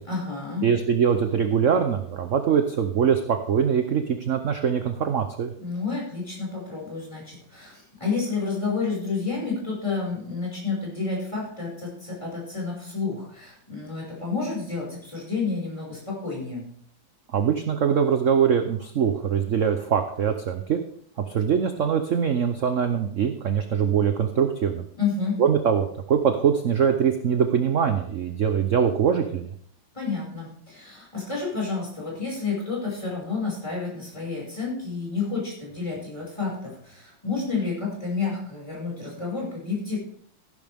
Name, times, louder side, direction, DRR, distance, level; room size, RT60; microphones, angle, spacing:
voice 1, 0.1-0.6 5.6-16.7 24.9-25.4 29.9-40.0, left 4 dB, 15° left, -4 dB, 5.7 m, -30 dB
voice 2, 0.6-5.5 17.3-20.8 21.2-24.8 25.4-29.5, right 7 dB, 55° right, 7 dB, 0.8 m, -23 dB
14.0 x 12.0 x 3.5 m, 0.62 s
omnidirectional pair, 2.2 m